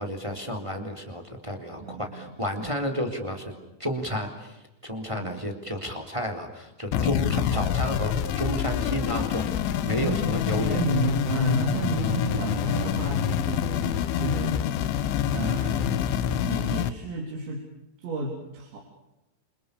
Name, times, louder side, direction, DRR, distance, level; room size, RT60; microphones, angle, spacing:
voice 1, 0.0-3.5 3.8-4.5 4.8-10.8, equal, 5° right, 5 dB, 3.3 m, -31 dB
voice 2, 1.8-2.7 5.1-5.4 10.0-10.3 10.6-14.6 15.3-16.0 16.4-17.6 18.0-18.8, right 2 dB, 70° right, 1 dB, 6.0 m, -31 dB
sound 1, 6.9-16.9, left 9 dB, 90° left, 3.8 m, -26 dB
28.5 x 27.5 x 6.9 m, 0.92 s
omnidirectional pair, 5.3 m